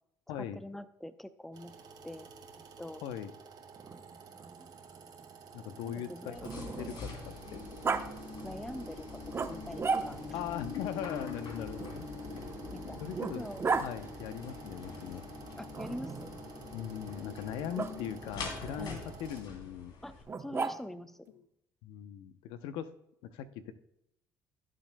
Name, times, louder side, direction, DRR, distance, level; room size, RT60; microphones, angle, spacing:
voice 1, 0.4-1.7 2.0-2.3 2.8-3.0 4.3-4.7 5.8-7.0 8.4-9.1 9.5-10.2 12.7-13.0 13.3-13.6 15.6-16.4 18.8-19.0 20.0-21.2, left 1 dB, 5° left, 12 dB, 0.7 m, -44 dB
sound 1, 1.5-19.4, right 6 dB, 60° right, 2.0 m, -52 dB
Growling, 3.8-7.2 7.8-8.0 9.3-10.4 11.8-13.9 15.7-16.4 17.7-17.9 20.3-21.1, right 4 dB, 30° right, 0.9 m, -36 dB
voice 2, 5.5-7.6 10.3-12.1 13.0-13.5 13.8-15.2 16.7-19.9 21.3-21.5 21.8-22.9 23.3-23.7, left 9 dB, 80° left, 11 dB, 0.7 m, -40 dB
sound 2, 6.3-20.2, left 4 dB, 60° left, 3.1 m, -44 dB
16.5 x 7.5 x 2.2 m, 0.77 s
supercardioid pair, 80°, 8 cm